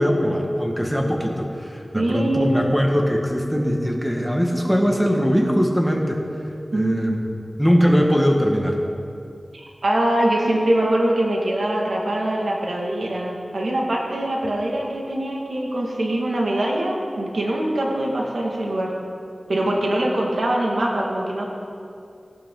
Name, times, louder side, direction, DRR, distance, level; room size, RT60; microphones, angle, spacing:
voice 1, 0.0-6.2 6.7-7.3 7.6-8.8, equal, 5° right, 1 dB, 1.8 m, -21 dB
voice 2, 1.9-2.7 6.7-7.3 9.8-18.9 19.5-21.5, right 1 dB, 80° right, -2 dB, 2.2 m, -23 dB
17.5 x 11.5 x 4.0 m, 2.5 s
wide cardioid pair, 70°, 0 cm